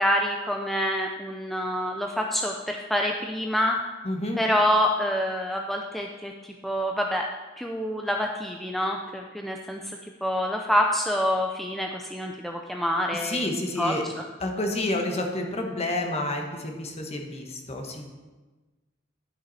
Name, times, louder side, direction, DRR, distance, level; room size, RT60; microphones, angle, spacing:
voice 1, 0.0-3.8 4.4-7.3 7.6-13.5 13.8-13.9, equal, ahead, 1 dB, 0.4 m, -27 dB
voice 2, 4.0-4.4 13.1-14.1 14.4-18.0, left 1 dB, 35° left, 3 dB, 1.2 m, -29 dB
11.5 x 6.2 x 4.1 m, 1.2 s
head